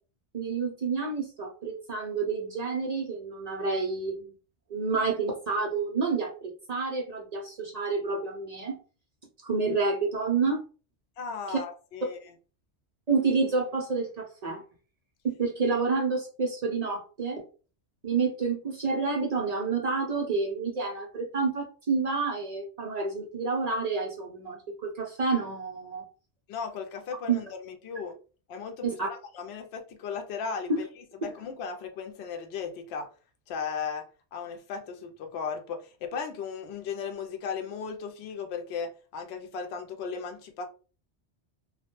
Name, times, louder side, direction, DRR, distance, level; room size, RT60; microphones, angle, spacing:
voice 1, 0.3-4.3 4.7-8.8 9.4-10.6 11.5-11.6 13.1-14.6 15.2-17.4 18.0-26.0 27.3-27.4 28.8-29.1 30.7-30.8 31.2-31.3, right 4 dB, 55° right, 0.4 m, -29 dB
voice 2, 11.2-12.2 26.5-28.1 28.5-30.9 31.2-33.1 33.5-34.0 34.3-40.7, left 6 dB, 70° left, 0.8 m, -36 dB
2.2 x 2.1 x 2.9 m
omnidirectional pair, 1.2 m